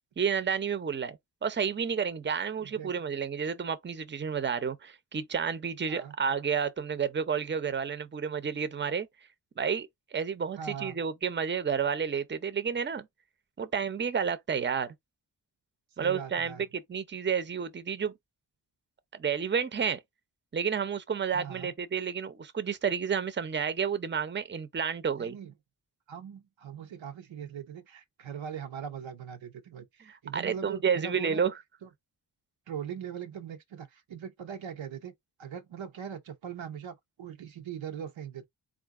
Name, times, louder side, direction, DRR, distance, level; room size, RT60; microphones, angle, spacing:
voice 1, 0.2-9.1 9.6-13.1 13.6-14.9 16.0-18.1 19.1-20.0 20.5-25.4 30.1-31.5, right 6 dB, 25° right, 0.6 m, -31 dB
voice 2, 2.6-2.9 5.9-6.1 10.6-11.0 16.0-16.7 21.3-21.7 25.2-25.5 26.1-31.4 31.8-31.9 32.7-35.1 35.4-38.4, right 8 dB, 85° right, 0.8 m, -41 dB
3.7 x 2.4 x 3.6 m
cardioid pair, 50°, 45 cm